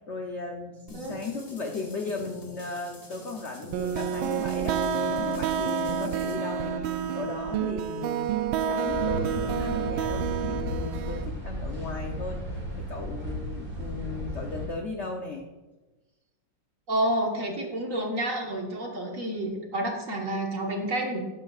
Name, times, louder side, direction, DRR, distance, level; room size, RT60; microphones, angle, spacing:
voice 1, 0.1-4.8 5.1-8.3 8.7-12.4 12.8-15.4, left 3 dB, 70° left, 3 dB, 0.6 m, -36 dB
sound 1, 0.9-6.4, left 2 dB, 20° left, 1.1 m, -48 dB
sound 2, 3.7-11.3, right 7 dB, 80° right, 1.4 m, -29 dB
sound 3, 8.9-14.7, equal, 25° right, 2.4 m, -34 dB
voice 2, 16.9-21.2, right 1 dB, 45° right, 0 dB, 1.6 m, -29 dB
12.0 x 10.0 x 2.4 m, 1.2 s
omnidirectional pair, 2.3 m